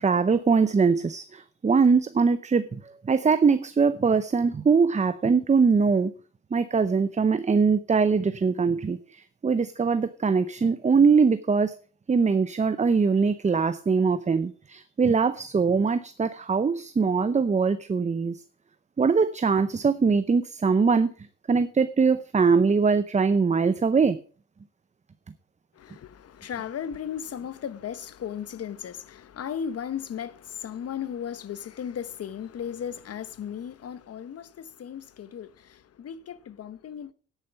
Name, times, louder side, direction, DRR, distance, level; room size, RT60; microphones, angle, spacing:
voice 1, 0.0-6.1 6.5-11.7 12.1-18.4 19.0-21.1 21.5-24.2, right 5 dB, 25° right, 0.7 m, -22 dB
voice 2, 25.7-37.1, left 8 dB, 55° left, 1.0 m, -36 dB
10.0 x 9.1 x 5.8 m
cardioid pair, 90°, 30 cm